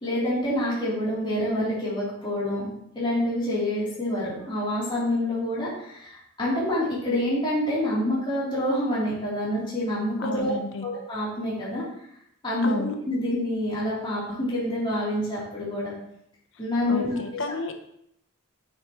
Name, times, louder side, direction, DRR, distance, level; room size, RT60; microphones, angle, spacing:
voice 1, 0.0-2.7 3.0-10.5 10.8-11.8 12.4-15.9 16.6-17.1, left 1 dB, 25° left, -9 dB, 3.6 m, -27 dB
voice 2, 10.2-10.9 12.6-12.9 16.9-17.7, left 2 dB, 60° left, 6 dB, 0.9 m, -31 dB
9.1 x 7.6 x 3.2 m, 0.71 s
head